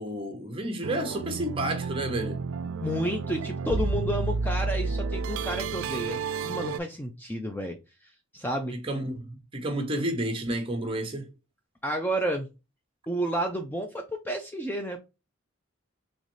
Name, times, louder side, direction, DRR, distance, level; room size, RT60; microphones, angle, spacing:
voice 1, 0.0-2.4 8.7-11.3, right 1 dB, 25° right, 1.0 m, -31 dB
sound 1, 0.8-6.8, right 4 dB, 80° right, 0.4 m, -31 dB
voice 2, 2.8-7.8 8.3-8.7 11.8-12.5 13.1-15.0, equal, 10° left, 0.4 m, -31 dB
4.0 x 3.0 x 3.0 m
head